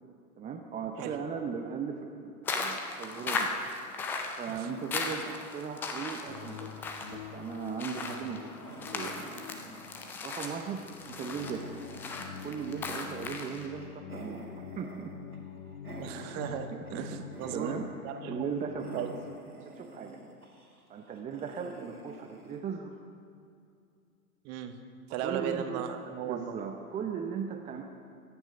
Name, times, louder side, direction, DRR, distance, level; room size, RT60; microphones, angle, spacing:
voice 1, 0.4-3.5 4.4-6.8 7.1-9.3 10.2-11.7 12.4-14.4 14.8-15.1 16.9-17.2 17.5-17.9 18.2-19.1 19.6-20.2 20.9-23.0 25.2-25.9 26.2-27.8, right 6 dB, 15° right, 3 dB, 0.8 m, -38 dB
sound 1, 2.5-13.7, left 3 dB, 5° left, 0.3 m, -38 dB
sound 2, 6.3-19.4, left 8 dB, 60° left, 1.0 m, -46 dB
sound 3, 8.3-17.0 17.3-18.1 18.4-22.6, right 2 dB, 90° right, 2.1 m, -49 dB
voice 2, 16.0-17.7 18.0-18.5 18.9-19.1 24.4-24.8 25.1-26.6, right 9 dB, 35° right, 7 dB, 1.4 m, -36 dB
23.5 x 9.5 x 5.1 m, 2.4 s
figure-of-eight pair, 95°, 43 cm